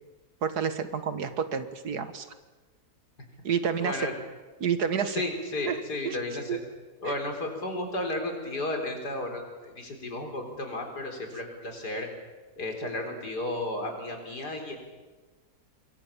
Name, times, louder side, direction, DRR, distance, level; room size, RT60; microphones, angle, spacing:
voice 1, 0.4-2.3 3.4-4.1 4.6-5.2 5.7-6.2 6.5-6.6 7.0-7.1, right 7 dB, 75° right, 10 dB, 2.0 m, -29 dB
voice 2, 3.8-4.1 5.1-6.6 7.0-12.1 12.6-14.8, left 1 dB, 80° left, 3 dB, 4.8 m, -33 dB
26.5 x 22.5 x 7.3 m, 1.3 s
omnidirectional pair, 1.7 m